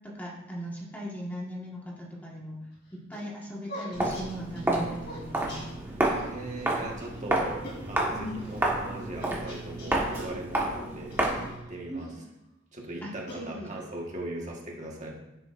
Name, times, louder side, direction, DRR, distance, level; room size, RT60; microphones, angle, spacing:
voice 1, 0.1-2.6 2.9-5.6 8.1-8.4 11.9-12.2 13.0-13.7, equal, 10° left, -4 dB, 1.5 m, -38 dB
sound 1, 2.7-6.3 6.6-6.7 7.0-7.2 7.6-8.6 9.2-10.3 11.1-12.2 12.8-14.0, left 1 dB, 50° left, 3.3 m, -46 dB
Walk footsteps, 3.9-11.6, right 1 dB, 10° right, 1.4 m, -30 dB
voice 2, 6.2-7.6 7.9-12.1 12.7-15.1, right 1 dB, 35° right, -1 dB, 1.5 m, -39 dB
11.0 x 9.1 x 2.6 m, 0.95 s
head